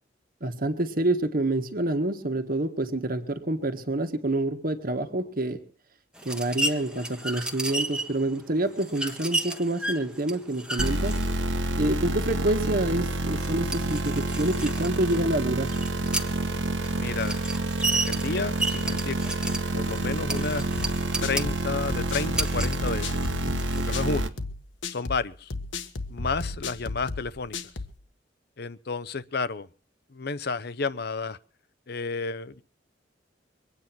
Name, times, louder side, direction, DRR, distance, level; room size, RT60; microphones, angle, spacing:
voice 1, 0.4-5.6 6.2-11.3 11.8-15.7, right 1 dB, 50° right, 7 dB, 1.7 m, -27 dB
sound 1, 6.2-24.0, right 2 dB, 5° right, 1.2 m, -34 dB
sound 2, 10.8-24.3, right 2 dB, 85° right, 1.5 m, -28 dB
voice 2, 16.9-17.5 17.9-19.4 19.7-20.7 21.2-23.2 23.9-24.3 24.9-25.5 26.1-27.6 28.6-29.7 30.1-31.4 31.9-32.6, left 4 dB, 60° left, 17 dB, 0.8 m, -31 dB
sound 3, 20.8-28.0, left 3 dB, 85° left, 1.5 m, -35 dB
23.0 x 9.6 x 6.1 m, 0.40 s
head